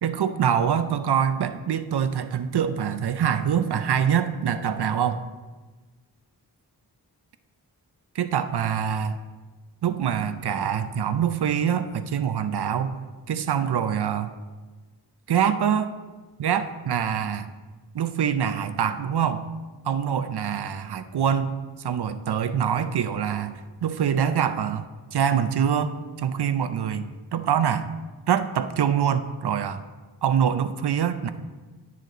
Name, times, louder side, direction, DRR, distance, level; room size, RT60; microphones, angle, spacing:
voice 1, 0.0-5.3 8.2-9.2 9.8-14.3 15.3-16.0 16.4-17.5 17.9-19.5 19.8-27.9 28.3-29.8 30.2-31.3, right 8 dB, 70° right, 10 dB, 0.7 m, -25 dB
10.0 x 6.6 x 4.0 m, 1.3 s
cardioid pair, 55°, 41 cm